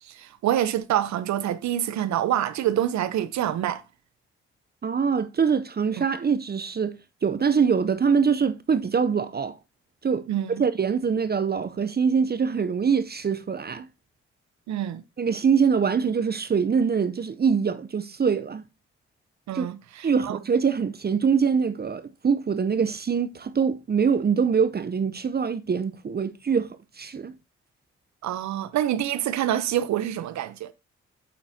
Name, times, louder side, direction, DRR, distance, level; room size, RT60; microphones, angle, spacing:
voice 1, 0.1-3.8 10.3-10.6 14.7-15.0 19.5-20.4 28.2-30.7, right 11 dB, 70° right, 0.8 m, -26 dB
voice 2, 4.8-9.6 10.0-13.9 15.2-18.6 19.5-19.7 20.0-27.3, right 6 dB, 35° right, 0.6 m, -24 dB
8.5 x 7.3 x 2.8 m
hypercardioid pair, 45°, 29 cm